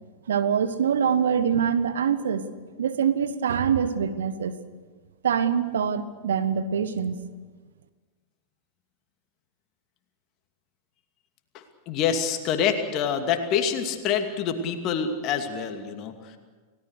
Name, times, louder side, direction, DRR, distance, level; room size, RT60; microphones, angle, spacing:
voice 1, 0.3-2.4 2.8-4.5 5.2-7.2, right 7 dB, 65° right, 11 dB, 1.4 m, -24 dB
voice 2, 11.9-16.4, left 7 dB, 40° left, 6 dB, 2.6 m, -26 dB
30.0 x 17.5 x 6.6 m, 1.4 s
figure-of-eight pair, 90°, 0 cm